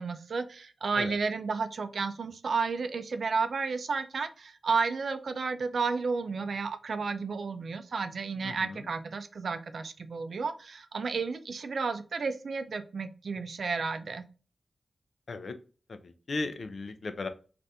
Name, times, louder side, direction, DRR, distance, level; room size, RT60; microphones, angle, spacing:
voice 1, 0.0-14.2, right 4 dB, 75° right, 10 dB, 0.4 m, -32 dB
voice 2, 8.4-8.9 15.3-15.5 15.9-17.3, left 3 dB, 65° left, 9 dB, 0.4 m, -36 dB
2.7 x 2.5 x 3.3 m, 0.37 s
cardioid pair, 65°, 0 cm